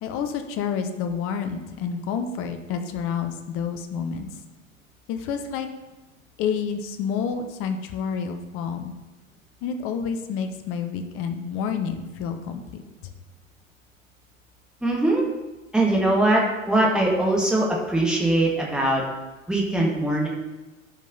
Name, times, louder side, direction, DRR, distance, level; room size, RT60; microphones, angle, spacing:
voice 1, 0.0-4.3 5.1-5.7 6.4-8.9 9.6-13.1, left 6 dB, 30° left, 7 dB, 1.0 m, -29 dB
voice 2, 14.8-15.2 15.7-19.0 19.5-20.3, right 1 dB, ahead, -3 dB, 1.7 m, -21 dB
13.0 x 5.2 x 3.9 m, 1.1 s
figure-of-eight pair, 100°, 40 cm